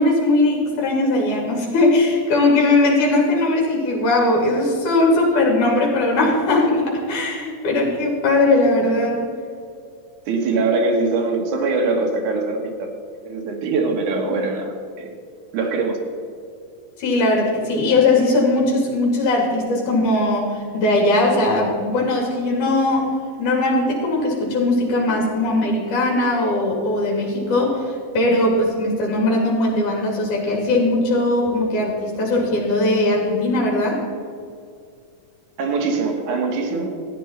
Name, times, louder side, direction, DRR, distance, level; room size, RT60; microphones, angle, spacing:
voice 1, 0.0-9.3 17.0-23.1 23.4-34.0, left 2 dB, 70° left, -1 dB, 3.8 m, -19 dB
voice 2, 10.3-12.9 13.2-15.2 15.5-16.0 35.6-36.9, right 3 dB, 70° right, 2 dB, 2.8 m, -22 dB
14.5 x 9.2 x 4.4 m, 2.2 s
omnidirectional pair, 3.8 m